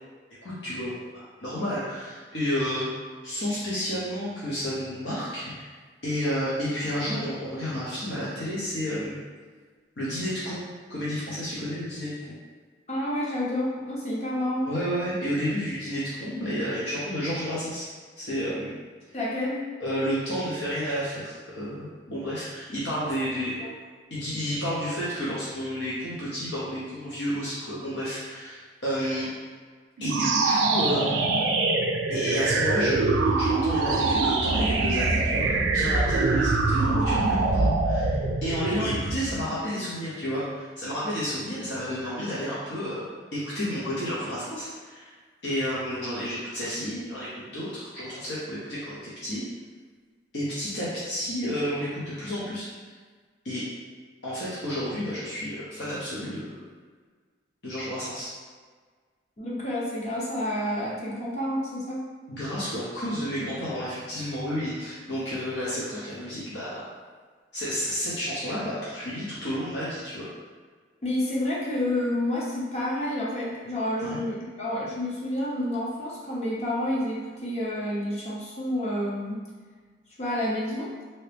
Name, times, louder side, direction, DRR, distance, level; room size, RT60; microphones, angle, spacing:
voice 1, 0.4-2.9 3.2-5.7 6.0-9.2 10.0-10.6 10.9-12.1 14.6-17.8 18.2-18.8 19.8-23.6 24.1-29.3 30.0-31.2 32.1-43.0 43.3-45.1 45.4-49.4 50.3-52.6 53.4-53.6 54.2-56.5 57.6-58.3 62.3-66.8 67.5-70.3 74.0-74.2, equal, 70° left, -9 dB, 0.9 m, -31 dB
voice 2, 12.9-14.7 19.1-19.6 23.0-23.7 59.4-62.0 71.0-79.4 80.2-80.9, left 1 dB, 35° left, -6 dB, 0.8 m, -29 dB
sound 1, 30.0-39.5, right 3 dB, 85° right, 0.4 m, -24 dB
2.8 x 2.8 x 3.3 m, 1.5 s
head